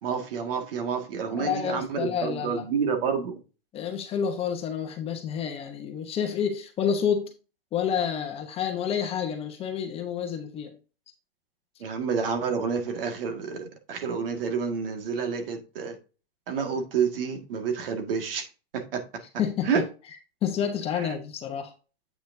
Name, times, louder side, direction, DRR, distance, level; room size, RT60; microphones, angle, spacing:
voice 1, 0.0-3.4 11.8-16.0 16.5-19.2 19.6-19.8 20.9-21.1, right 6 dB, 65° right, 2.0 m, -29 dB
voice 2, 1.3-2.6 3.7-7.3 7.7-10.8 19.4-19.7 20.4-21.7, left 8 dB, 20° left, 1.0 m, -29 dB
8.4 x 6.1 x 2.7 m
hypercardioid pair, 155°, 30 cm